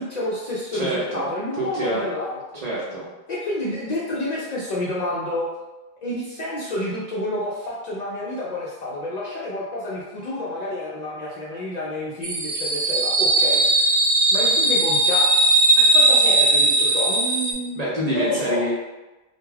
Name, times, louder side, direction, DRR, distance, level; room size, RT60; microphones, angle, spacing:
voice 1, 0.0-2.6 3.3-5.5 6.0-13.9 14.3-15.3 15.8-17.8 18.1-18.6, left 1 dB, 55° left, -7 dB, 0.5 m, -29 dB
voice 2, 0.7-1.3 1.6-2.1 2.6-3.1 17.7-18.7, right 1 dB, 50° right, -6 dB, 0.6 m, -26 dB
sound 1, 12.2-17.5, right 2 dB, 75° right, 0.8 m, -18 dB
2.3 x 2.2 x 3.1 m, 1.1 s
omnidirectional pair, 1.1 m